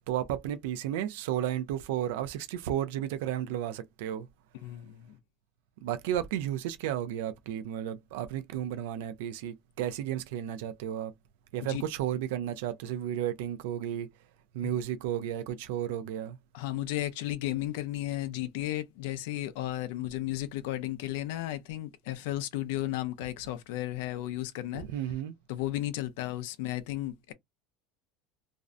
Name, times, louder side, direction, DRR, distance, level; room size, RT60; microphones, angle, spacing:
voice 1, 0.1-4.3 5.8-11.1 11.5-14.1 14.5-16.4 24.7-25.3, right 11 dB, 85° right, 0.4 m, -33 dB
voice 2, 4.6-5.2 11.7-11.8 16.5-24.8 25.5-27.3, left 15 dB, 75° left, 0.4 m, -34 dB
2.5 x 2.0 x 2.5 m
cardioid pair, 170°, 0 cm